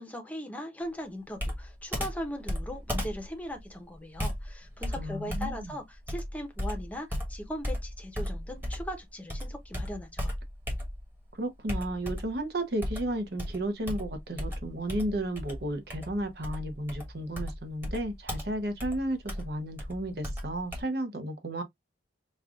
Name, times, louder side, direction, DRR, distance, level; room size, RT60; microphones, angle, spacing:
voice 1, 0.0-10.3, equal, 10° left, 0.8 m, -39 dB
Computer keyboard, 1.4-9.0 9.3-11.2 11.7-12.4 12.8-20.8, equal, 10° right, 1.3 m, -35 dB
voice 2, 5.0-5.7 11.3-21.6, right 1 dB, 60° right, 0.8 m, -33 dB
5.3 x 2.5 x 2.3 m
head